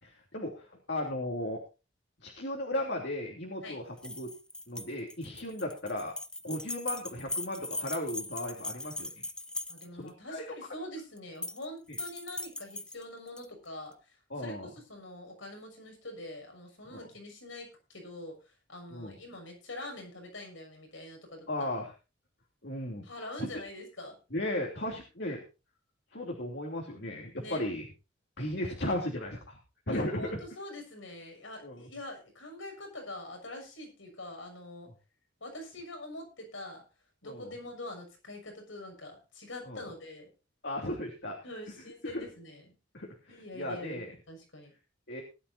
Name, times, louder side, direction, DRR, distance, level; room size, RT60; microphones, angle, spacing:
voice 1, 0.0-1.6 2.2-4.3 4.7-6.1 6.4-9.2 9.9-10.4 11.9-12.0 14.3-14.7 16.9-17.1 18.9-19.2 21.5-21.9 22.6-23.1 23.4-23.5 24.3-25.4 26.1-27.9 28.4-29.6 29.9-30.4 31.6-31.8 37.2-37.5 39.7-39.9 40.6-41.4 42.0-42.2 42.9-44.1 45.1-45.2, left 1 dB, 60° left, 0 dB, 3.1 m, -36 dB
sound 1, 4.0-10.1 11.2-11.7 11.9-13.5, left 1 dB, 5° left, 0.8 m, -39 dB
voice 2, 9.7-14.6 14.9-21.7 23.0-24.2 27.3-27.6 29.9-34.9 35.4-36.8 37.2-40.3 41.4-42.6 43.3-44.7, left 1 dB, 85° left, 4 dB, 6.4 m, -44 dB
19.0 x 12.0 x 2.7 m, 0.30 s
head